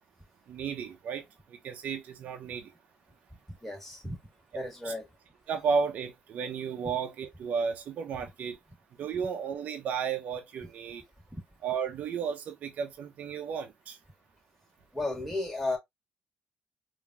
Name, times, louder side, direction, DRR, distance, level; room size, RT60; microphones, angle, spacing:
voice 1, 0.5-1.2 1.5-2.7 4.8-4.9 5.5-8.6 9.0-11.0 11.6-14.0, right 6 dB, 60° right, 0.7 m, -33 dB
voice 2, 3.6-4.2 4.5-5.0 11.3-11.4 14.9-15.8, left 2 dB, 5° left, 1.5 m, -33 dB
3.7 x 2.7 x 2.2 m
cardioid pair, 150°, 3 cm